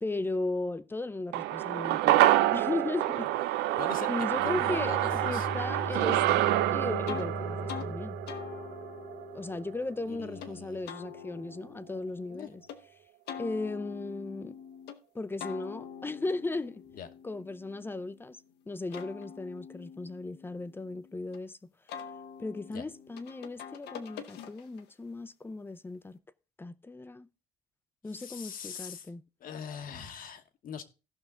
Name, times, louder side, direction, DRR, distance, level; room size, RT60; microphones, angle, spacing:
voice 1, 0.0-3.6 4.1-8.2 9.3-12.6 13.4-14.6 15.1-16.8 17.2-18.4 18.7-21.7 22.4-26.2 26.6-27.3 28.0-29.2, left 2 dB, 15° left, 0.5 m, -36 dB
sound 1, 1.3-9.8 10.1-10.2, right 14 dB, 90° right, 0.5 m, -28 dB
voice 2, 3.8-5.5 10.1-10.8 12.3-12.5 16.9-17.1 22.7-22.8 28.0-29.1 29.4-30.8, left 8 dB, 55° left, 1.2 m, -42 dB
Bowed string instrument, 4.3-9.5, left 2 dB, 40° left, 1.2 m, -39 dB
sound 2, 7.1-7.3 7.7-7.9 8.3-10.5 10.9-12.8 13.3-15.0 15.4-18.3 18.7-21.4 21.9-24.9, left 8 dB, 80° left, 1.1 m, -45 dB
16.0 x 5.7 x 3.7 m
cardioid pair, 110°, 17 cm